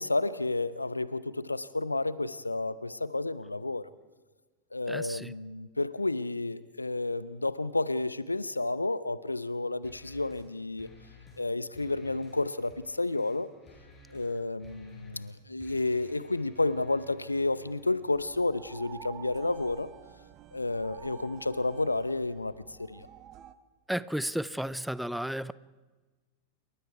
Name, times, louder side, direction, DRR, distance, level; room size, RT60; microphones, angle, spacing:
voice 1, 0.0-3.9 4.7-10.9 11.4-13.5 14.1-19.9 20.5-22.5 22.8-23.1, left 2 dB, 80° left, 0.8 m, -31 dB
voice 2, 4.9-5.3 23.9-25.5, equal, ahead, 0.6 m, -33 dB
sound 1, 9.8-10.5 10.8-11.5 11.7-18.0, left 1 dB, 20° left, 7.6 m, -53 dB
sound 2, 18.1-23.5, right 11 dB, 35° right, 1.1 m, -50 dB
28.5 x 23.0 x 4.7 m
figure-of-eight pair, 90°, 0 cm